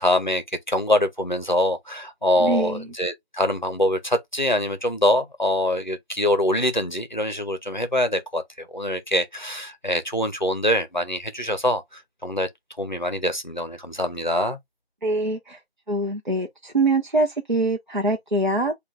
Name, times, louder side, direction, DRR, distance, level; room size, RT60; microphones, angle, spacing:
voice 1, 0.0-12.5 12.8-14.6, left 1 dB, 45° left, 0.6 m, -24 dB
voice 2, 2.4-2.9 15.0-15.6 15.9-18.7, right 2 dB, 50° right, 0.7 m, -24 dB
6.8 x 2.3 x 2.5 m
figure-of-eight pair, 180°, 31 cm